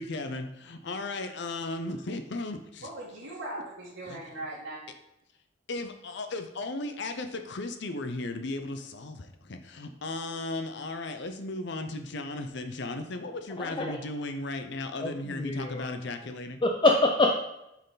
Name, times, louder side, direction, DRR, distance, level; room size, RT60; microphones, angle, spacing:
voice 1, 0.0-2.9 4.1-4.2 5.7-16.6, left 2 dB, 65° left, 7 dB, 0.6 m, -36 dB
voice 2, 2.8-4.8, right 1 dB, 80° right, -10 dB, 2.0 m, -39 dB
voice 3, 13.6-14.0 15.0-15.9 16.6-17.3, left 2 dB, 25° left, 2 dB, 0.5 m, -25 dB
8.1 x 4.5 x 4.0 m, 0.86 s
head